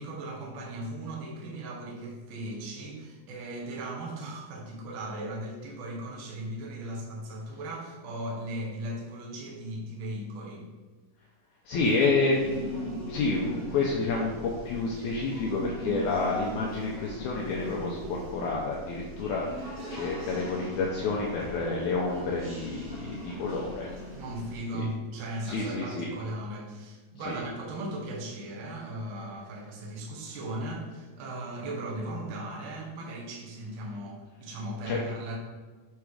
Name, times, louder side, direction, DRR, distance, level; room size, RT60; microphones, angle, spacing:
voice 1, 0.0-10.7 24.1-35.4, right 1 dB, 70° right, -2 dB, 1.2 m, -37 dB
voice 2, 11.7-23.9 24.7-24.8 25.5-26.1 27.3-27.4 34.9-35.0, left 3 dB, 80° left, -3 dB, 1.8 m, -29 dB
sound 1, 12.3-24.6, equal, 50° right, 2.8 m, -40 dB
7.0 x 3.7 x 4.8 m, 1.4 s
omnidirectional pair, 4.2 m